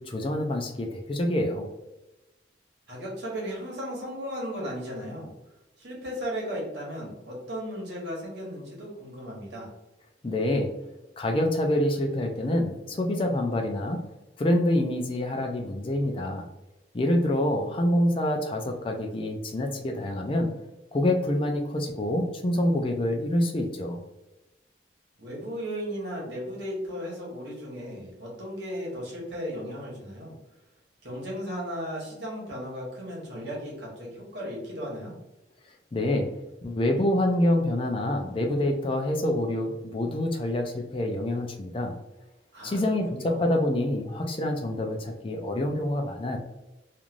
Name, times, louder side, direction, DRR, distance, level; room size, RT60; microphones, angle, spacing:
voice 1, 0.0-1.7 10.2-10.7 11.2-14.0 14.4-16.5 16.9-20.5 20.9-24.0 35.9-36.3 36.6-42.0 42.6-46.4, left 1 dB, 30° left, 3 dB, 0.4 m, -26 dB
voice 2, 2.9-5.3 5.8-9.7 25.2-30.3 31.0-35.1 42.5-43.4, equal, 65° right, -4 dB, 1.2 m, -36 dB
3.1 x 2.5 x 2.5 m, 0.99 s
head